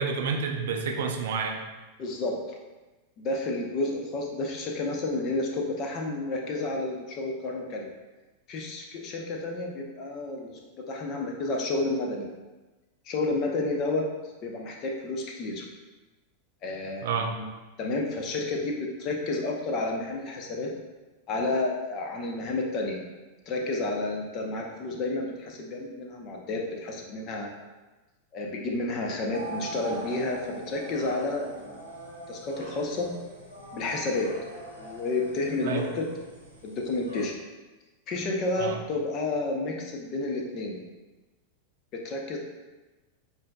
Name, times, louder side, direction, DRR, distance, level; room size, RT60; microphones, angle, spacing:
voice 1, 0.0-1.6 17.0-17.3 35.6-35.9 38.6-38.8, right 5 dB, 55° right, 3 dB, 0.5 m, -29 dB
voice 2, 2.0-2.4 3.2-7.9 8.5-10.6 10.9-12.3 13.0-14.0 14.4-15.6 16.6-17.5 17.8-20.7 21.3-23.0 23.5-27.5 28.3-31.9 32.3-33.1 33.7-34.3 34.8-36.0 36.6-37.3 38.1-40.8 41.9-42.4, left 2 dB, 35° left, 1 dB, 0.7 m, -30 dB
sound 1, 29.3-37.3, right 2 dB, 90° left, 1.0 m, -42 dB
7.3 x 2.7 x 2.3 m, 1.2 s
figure-of-eight pair, 90°, 0 cm